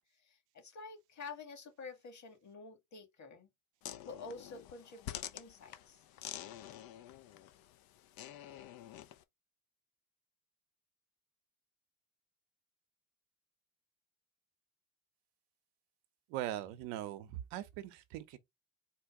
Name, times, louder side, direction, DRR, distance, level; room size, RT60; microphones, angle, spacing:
voice 1, 0.1-3.5 4.0-6.0, left 4 dB, 45° left, 2.2 m, -49 dB
sound 1, 3.8-9.2, left 12 dB, 65° left, 0.7 m, -48 dB
voice 2, 16.3-18.4, right 13 dB, 75° right, 0.8 m, -41 dB
4.4 x 2.3 x 4.7 m
hypercardioid pair, 60°, 38 cm